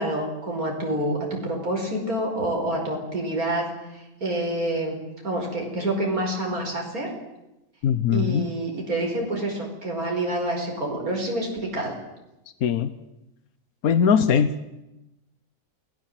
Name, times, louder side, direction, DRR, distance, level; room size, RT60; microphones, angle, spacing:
voice 1, 0.0-3.7 3.9-5.0 5.2-7.1 8.1-12.0, right 1 dB, 85° right, 0 dB, 5.5 m, -27 dB
voice 2, 7.8-8.5 12.6-12.9 13.8-14.6, left 7 dB, 85° left, 12 dB, 1.5 m, -20 dB
28.5 x 19.5 x 7.8 m, 0.95 s
omnidirectional pair, 1.5 m